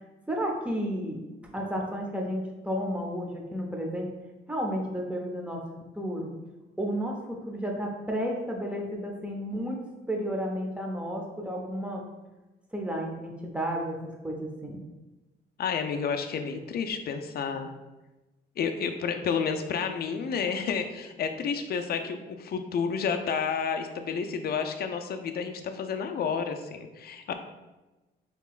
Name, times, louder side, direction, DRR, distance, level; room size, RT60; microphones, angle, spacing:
voice 1, 0.3-1.2 1.5-4.1 4.5-5.6 5.9-6.3 6.8-9.8 10.1-12.0 12.7-14.0 14.2-14.8, equal, 5° right, 0 dB, 0.8 m, -32 dB
voice 2, 15.6-17.7 18.6-27.3, left 6 dB, 50° left, 6 dB, 0.4 m, -30 dB
4.5 x 3.0 x 2.4 m, 1.1 s
cardioid pair, 90°, 20 cm